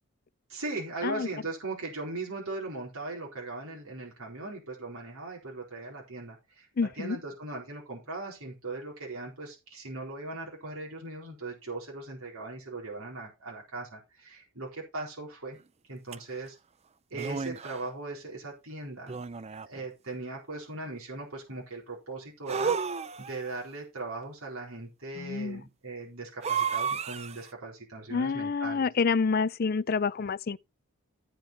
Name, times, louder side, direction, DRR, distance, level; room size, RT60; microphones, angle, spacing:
voice 1, 0.5-6.7 7.0-15.6 15.9-16.6 17.1-19.2 19.6-22.7 23.2-28.9, right 2 dB, 70° right, 4.3 m, -39 dB
voice 2, 6.8-7.2 25.2-25.6 28.1-30.6, left 5 dB, 40° left, 0.4 m, -28 dB
sound 1, 16.1-16.2 17.1-17.9 19.1-19.8 22.5-23.5 26.4-27.5, right 6 dB, 30° right, 0.5 m, -32 dB
14.5 x 5.4 x 4.3 m
head